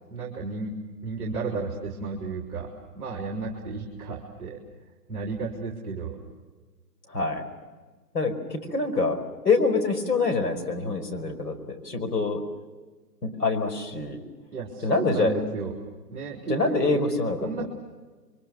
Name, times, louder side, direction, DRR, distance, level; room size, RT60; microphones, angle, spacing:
voice 1, 0.1-0.7 1.0-4.6 5.1-6.2 14.5-15.8 16.1-17.0 17.4-17.7, right 4 dB, 10° right, 0 dB, 2.6 m, -33 dB
voice 2, 7.1-7.4 8.1-12.4 13.2-14.2 14.8-15.3 16.5-17.7, left 3 dB, 70° left, 5 dB, 5.1 m, -26 dB
28.5 x 23.5 x 6.5 m, 1.3 s
hypercardioid pair, 155°, 49 cm